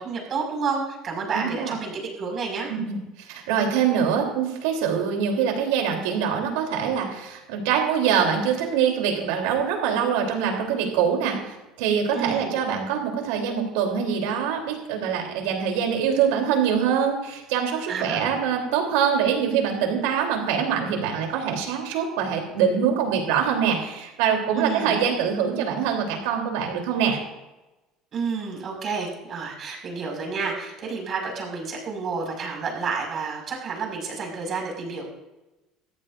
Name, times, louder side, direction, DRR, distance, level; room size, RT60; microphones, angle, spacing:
voice 1, 0.0-2.7 12.1-12.5 17.9-18.4 24.5-25.0 28.1-35.1, right 5 dB, 45° right, 0 dB, 5.5 m, -30 dB
voice 2, 1.3-1.7 2.7-27.2, right 7 dB, 85° right, 2 dB, 3.3 m, -24 dB
19.0 x 14.0 x 2.6 m, 1.0 s
supercardioid pair, 100°, 0 cm